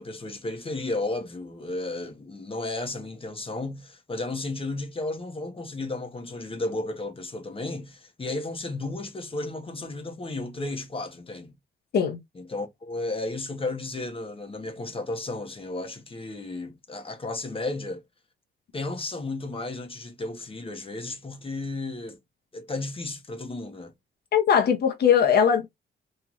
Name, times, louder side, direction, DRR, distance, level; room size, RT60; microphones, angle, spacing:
voice 1, 0.0-11.5 12.3-18.0 18.7-22.2 22.5-23.9, left 2 dB, 25° left, 1.1 m, -33 dB
voice 2, 24.3-25.7, left 8 dB, 55° left, 1.1 m, -20 dB
3.1 x 2.6 x 3.9 m
cardioid pair, 90°, 20 cm